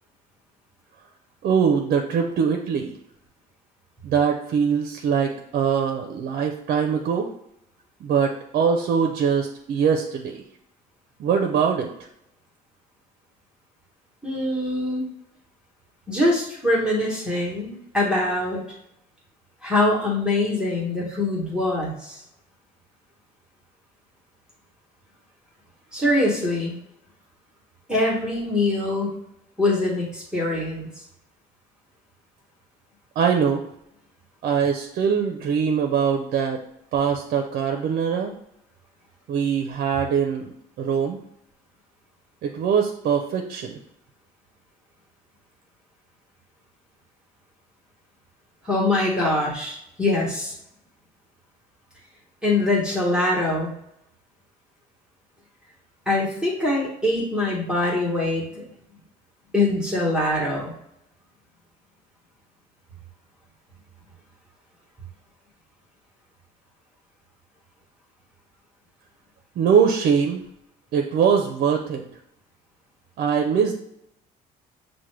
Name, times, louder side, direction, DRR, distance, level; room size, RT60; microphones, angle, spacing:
voice 1, 1.4-3.0 4.0-7.3 8.0-10.4 11.2-11.9 33.2-33.6 34.4-36.6 36.9-38.3 39.3-40.5 40.8-41.2 42.4-43.8 69.6-70.4 70.9-72.0 73.2-73.7, right 7 dB, 60° right, 3 dB, 0.5 m, -22 dB
voice 2, 14.2-15.1 16.1-18.6 19.6-22.2 25.9-26.8 27.9-29.2 29.6-30.9 48.6-50.5 52.4-53.7 56.1-58.6 59.5-60.7, left 2 dB, 5° right, -4 dB, 1.1 m, -23 dB
5.8 x 2.2 x 3.2 m, 0.76 s
cardioid pair, 110°, 17 cm